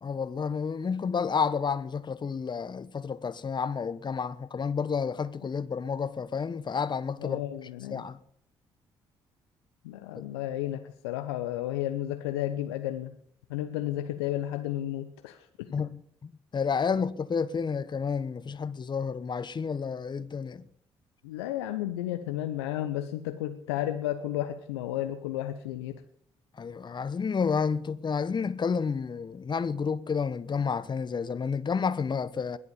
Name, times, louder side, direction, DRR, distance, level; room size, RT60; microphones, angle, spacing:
voice 1, 0.0-7.4 7.9-8.2 10.2-10.3 15.7-20.6 26.6-32.6, left 6 dB, 35° left, 1.0 m, -30 dB
voice 2, 7.2-8.0 9.8-13.1 13.5-15.7 21.2-26.0, left 13 dB, 80° left, 0.8 m, -32 dB
20.5 x 8.4 x 7.1 m
hypercardioid pair, 45°, 13 cm